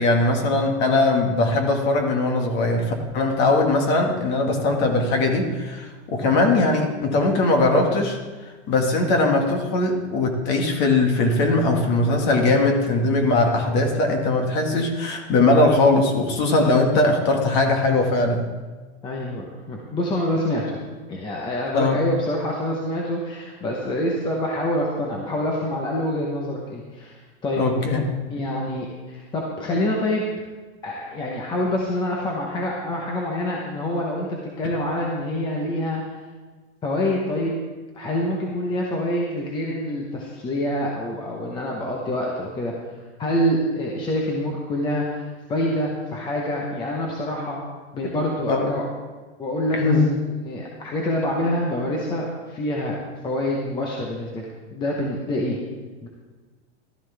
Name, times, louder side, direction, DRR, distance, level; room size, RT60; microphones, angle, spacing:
voice 1, 0.0-8.2 8.7-18.5 21.7-22.0 27.6-28.0 48.5-48.7 49.7-50.0, left 2 dB, 30° left, 3 dB, 1.8 m, -20 dB
voice 2, 19.0-20.8 21.1-27.6 28.3-30.2 30.8-34.3 34.6-36.0 36.8-37.5 37.9-42.7 43.2-47.6 47.9-48.9 49.4-53.0 53.2-54.4 54.7-55.6 56.0-56.1, left 1 dB, 15° left, -2 dB, 1.0 m, -26 dB
14.5 x 13.0 x 3.4 m, 1.3 s
supercardioid pair, 170°, 35 cm